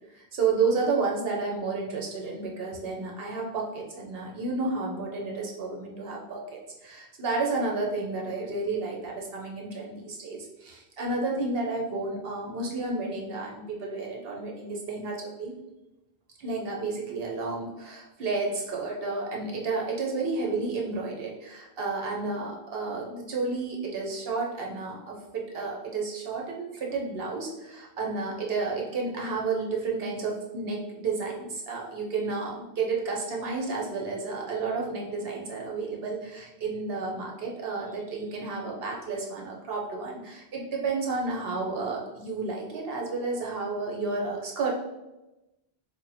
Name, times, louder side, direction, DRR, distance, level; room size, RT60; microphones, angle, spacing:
voice 1, 0.1-15.5 16.4-44.7, right 3 dB, 65° right, -2 dB, 0.9 m, -31 dB
3.5 x 2.2 x 4.0 m, 0.99 s
omnidirectional pair, 1.1 m